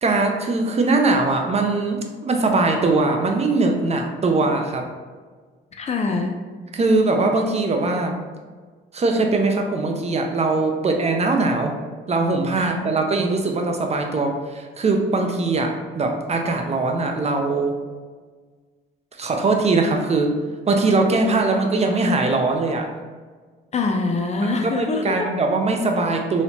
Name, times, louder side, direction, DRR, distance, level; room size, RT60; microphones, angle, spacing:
voice 1, 0.0-4.9 6.7-8.2 8.9-11.7 12.1-17.8 19.2-20.3 20.7-22.9 24.6-26.4, right 3 dB, 35° right, 3 dB, 0.5 m, -21 dB
voice 2, 5.8-6.4 12.6-12.9 23.7-25.3, left 3 dB, 35° left, 3 dB, 0.4 m, -24 dB
3.1 x 2.9 x 2.7 m, 1.5 s
cardioid pair, 90°, 20 cm